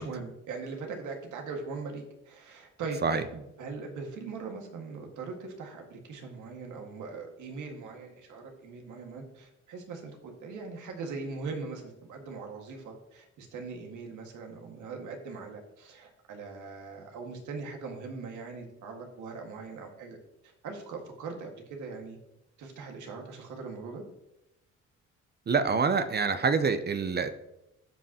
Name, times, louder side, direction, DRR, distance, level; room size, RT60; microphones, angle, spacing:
voice 1, 0.0-20.2 20.6-22.2 22.6-24.0, right 4 dB, 80° right, 2 dB, 1.8 m, -40 dB
voice 2, 25.5-27.3, right 5 dB, 35° right, 11 dB, 0.6 m, -26 dB
14.5 x 5.3 x 2.8 m, 0.89 s
cardioid pair, 90°, 30 cm